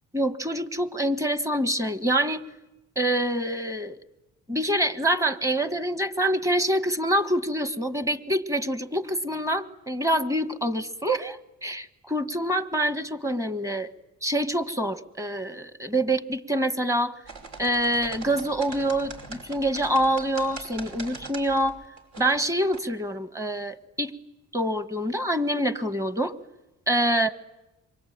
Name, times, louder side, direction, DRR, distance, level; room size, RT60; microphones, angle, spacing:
voice 1, 0.1-2.4 2.9-4.0 4.5-13.9 14.2-17.1 17.6-21.8 22.2-24.1 24.5-26.3 26.9-27.3, right 1 dB, 10° right, 12 dB, 1.5 m, -26 dB
sound 1, 17.2-22.8, right 3 dB, 65° right, 5.3 m, -41 dB
27.0 x 24.5 x 8.9 m, 0.99 s
cardioid pair, 90°, 30 cm